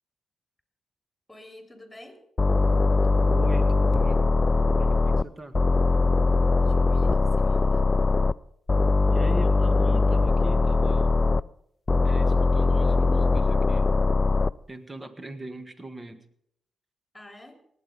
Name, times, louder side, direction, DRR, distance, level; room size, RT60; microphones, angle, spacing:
voice 1, 1.3-2.2 6.6-8.0 17.1-17.6, left 1 dB, 10° left, 5 dB, 3.5 m, -48 dB
sound 1, 2.4-5.2 5.5-8.3 8.7-11.4 11.9-14.5, left 3 dB, 35° left, 0.4 m, -21 dB
voice 2, 3.2-4.3 4.6-5.6 9.1-11.1 12.0-14.0 14.7-16.3, right 2 dB, 30° right, 11 dB, 1.7 m, -40 dB
18.5 x 8.9 x 5.3 m, 0.73 s
supercardioid pair, 50°, 0 cm